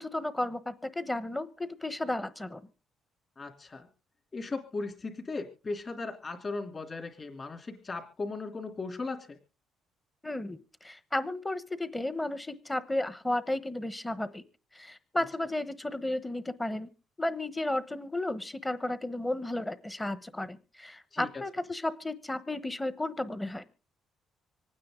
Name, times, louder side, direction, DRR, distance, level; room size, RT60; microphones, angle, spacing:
voice 1, 0.0-2.6 10.2-14.4 14.7-16.9 17.2-23.6, left 1 dB, 10° left, 13 dB, 1.0 m, -33 dB
voice 2, 3.4-3.9 4.3-9.4 15.1-15.2 21.1-21.4, left 3 dB, 30° left, 3 dB, 2.9 m, -37 dB
25.5 x 9.5 x 3.7 m, 0.36 s
cardioid pair, 115°, 0 cm